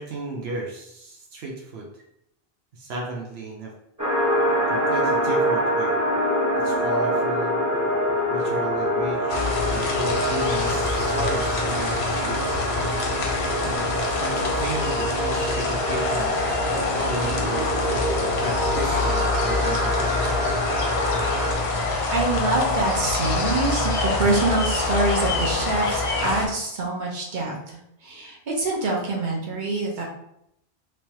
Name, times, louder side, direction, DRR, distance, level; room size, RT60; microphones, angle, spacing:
voice 1, 0.0-1.9 2.7-3.7 4.7-5.9 6.5-7.6 8.3-12.5 13.6-16.4 16.9-20.1, right 2 dB, 80° right, -1 dB, 0.9 m, -34 dB
sound 1, 4.0-21.5, equal, 20° right, 0.9 m, -25 dB
sound 2, 9.3-26.5, left 3 dB, 90° left, 1.0 m, -26 dB
voice 2, 22.1-30.0, right 2 dB, 50° right, -2 dB, 1.0 m, -25 dB
3.3 x 3.1 x 2.9 m, 0.77 s
omnidirectional pair, 1.0 m